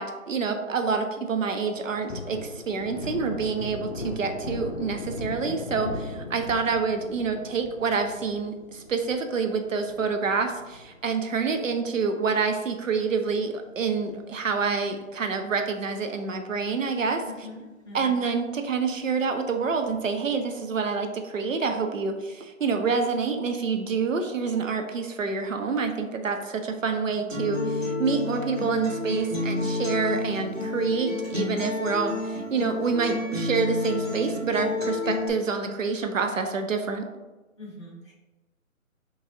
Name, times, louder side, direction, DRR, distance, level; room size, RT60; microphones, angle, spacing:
voice 1, 0.0-17.2 17.9-37.1, right 5 dB, 65° right, 5 dB, 0.8 m, -27 dB
Thunder, 1.7-12.4 12.8-12.9 13.2-14.7 15.0-15.2 15.5-16.3 16.7-16.8 17.2-17.3 19.6-20.2, left 2 dB, 50° left, 0.8 m, -39 dB
voice 2, 3.0-3.4 17.3-18.2 27.2-27.3 37.6-38.1, left 1 dB, 20° left, -6 dB, 0.8 m, -44 dB
Acoustic guitar, 27.3-35.3, left 2 dB, 10° right, 1.3 m, -30 dB
6.1 x 3.2 x 2.6 m, 1.2 s
figure-of-eight pair, 165°, 41 cm